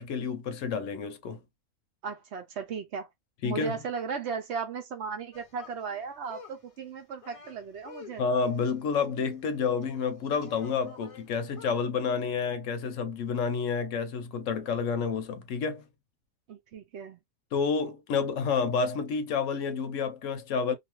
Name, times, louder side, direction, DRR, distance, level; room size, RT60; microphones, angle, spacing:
voice 1, 0.0-1.4 3.4-3.7 8.2-15.8 17.5-20.7, left 5 dB, 75° left, 0.9 m, -29 dB
voice 2, 2.0-3.1 3.4-8.2 16.5-17.2, right 6 dB, 60° right, 0.8 m, -36 dB
sound 1, 5.3-11.9, left 5 dB, 40° left, 0.5 m, -51 dB
2.6 x 2.5 x 2.9 m
omnidirectional pair, 1.4 m